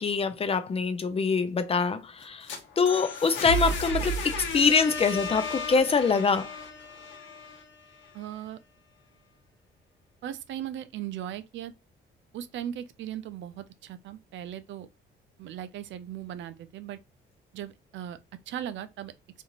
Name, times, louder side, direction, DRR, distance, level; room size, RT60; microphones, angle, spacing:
voice 1, 0.0-2.5 2.8-6.5, left 5 dB, 30° left, 0.4 m, -24 dB
sound 1, 2.2-8.1, equal, 70° left, 0.8 m, -34 dB
voice 2, 8.1-8.6 10.2-11.7 12.3-14.9 15.4-17.0 17.5-18.2 18.5-19.1, right 11 dB, 70° right, 0.4 m, -38 dB
2.6 x 2.5 x 2.8 m
cardioid pair, 90°, 20 cm